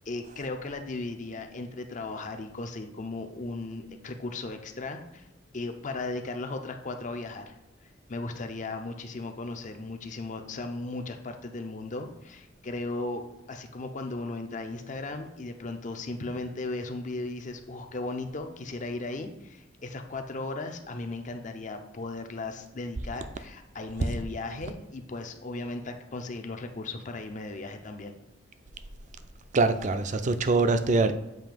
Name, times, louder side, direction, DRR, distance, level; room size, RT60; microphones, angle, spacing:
voice 1, 0.1-5.3 5.5-7.5 7.8-28.1, left 2 dB, 40° left, 0.6 m, -36 dB
voice 2, 29.5-31.1, right 3 dB, 40° right, 0.4 m, -23 dB
7.6 x 2.7 x 5.2 m
head